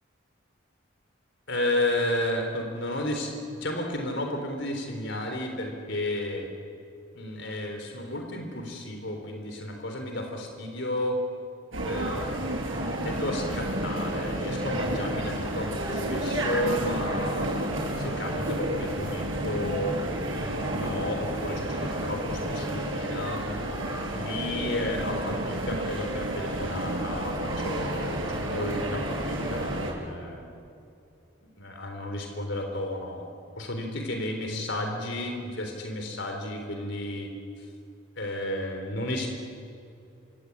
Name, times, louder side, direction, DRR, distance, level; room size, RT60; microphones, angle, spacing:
voice 1, 1.5-6.5 7.1-11.2 11.8-17.5 18.0-20.0 20.4-23.4 24.1-30.4 31.4-33.3 33.6-37.3 37.6-37.7 38.2-39.3, left 1 dB, 65° left, 3 dB, 4.0 m, -32 dB
sound 1, 11.7-29.9, right 1 dB, 80° right, 7.7 m, -31 dB
27.0 x 25.0 x 8.7 m, 2.6 s
head